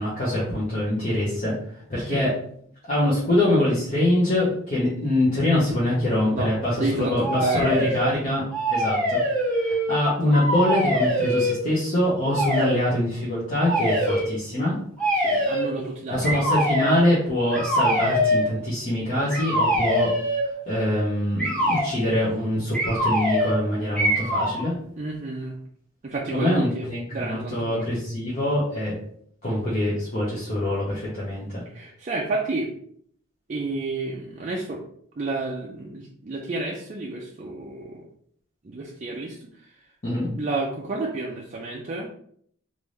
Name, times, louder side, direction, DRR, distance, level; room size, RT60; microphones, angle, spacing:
voice 1, 0.0-1.5 1.9-2.3 2.8-8.4 8.7-9.2 9.5-14.7 16.1-20.1 20.7-24.7 26.3-28.9 29.4-31.6 40.0-40.3, left 1 dB, 40° left, -7 dB, 0.9 m, -24 dB
voice 2, 2.0-2.3 6.3-6.5 6.8-7.9 15.2-16.4 25.0-25.6 26.0-26.9 27.1-27.9 31.7-32.7 33.5-34.8 35.2-38.0 38.6-39.4 39.7-39.8 40.4-42.1, right 2 dB, 35° right, -2 dB, 0.4 m, -30 dB
sound 1, 7.2-8.1 8.5-10.0 10.3-11.6 12.3-12.8 13.6-14.3 15.0-15.7 16.2-17.0 17.5-18.5 19.3-20.5 21.4-21.9 22.7-23.6 24.0-24.6, equal, 5° left, 1.1 m, -23 dB
3.4 x 2.5 x 3.1 m, 0.63 s
head